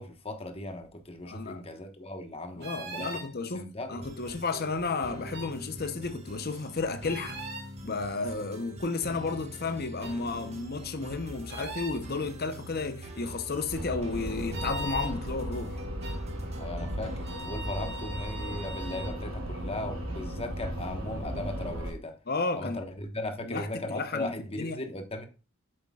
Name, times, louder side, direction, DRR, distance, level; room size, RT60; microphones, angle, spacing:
voice 1, 0.0-3.2 3.5-3.9 16.6-22.2 22.5-25.3, left 1 dB, 30° left, 1.3 m, -37 dB
voice 2, 1.3-1.6 2.6-7.4 7.8-15.8 22.3-22.8 23.5-24.8, left 3 dB, 50° left, 0.8 m, -33 dB
sound 1, 2.6-3.3 5.3-5.5 7.0-7.7 10.0-10.2 11.5-12.0 14.5-15.1 16.0-16.2 17.2-19.2, right 1 dB, 55° right, 2.4 m, -40 dB
sound 2, 3.9-17.5, right 1 dB, 30° right, 1.7 m, -44 dB
sound 3, 13.7-21.9, equal, 85° right, 3.0 m, -36 dB
8.0 x 7.8 x 2.4 m
head